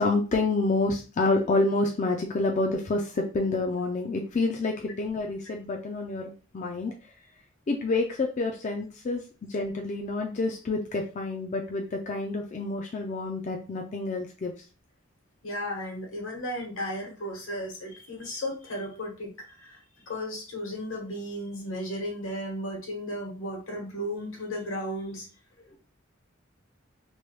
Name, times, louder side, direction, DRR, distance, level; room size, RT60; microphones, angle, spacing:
voice 1, 0.0-6.9 7.7-9.2 9.5-14.5, left 3 dB, 35° left, 1 dB, 0.4 m, -28 dB
voice 2, 15.4-19.8 20.1-25.3, equal, 80° left, 0 dB, 1.3 m, -34 dB
3.0 x 2.2 x 3.1 m, 0.34 s
head